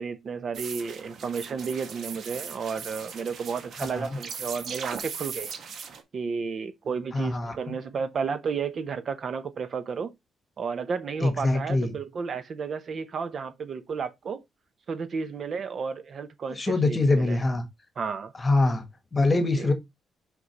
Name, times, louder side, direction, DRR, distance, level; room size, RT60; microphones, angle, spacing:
voice 1, 0.0-5.5 6.1-10.1 10.6-14.4 14.9-17.4 18.0-18.3 19.6-19.7, right 5 dB, 40° right, 0.8 m, -32 dB
sound 1, 0.5-6.0, right 6 dB, 55° right, 1.5 m, -39 dB
voice 2, 7.1-7.7 11.2-11.9 16.5-17.6 18.4-18.8 19.1-19.7, left 2 dB, 20° left, 1.3 m, -24 dB
6.1 x 5.3 x 3.0 m
cardioid pair, 160°, 0 cm